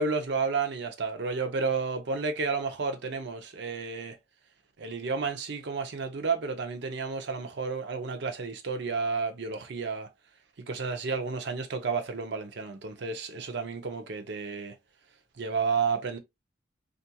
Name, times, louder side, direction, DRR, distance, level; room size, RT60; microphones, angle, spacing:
voice 1, 0.0-4.2 4.8-10.1 10.7-14.7 15.4-16.2, right 4 dB, 60° right, 0.5 m, -31 dB
2.8 x 2.5 x 2.2 m
head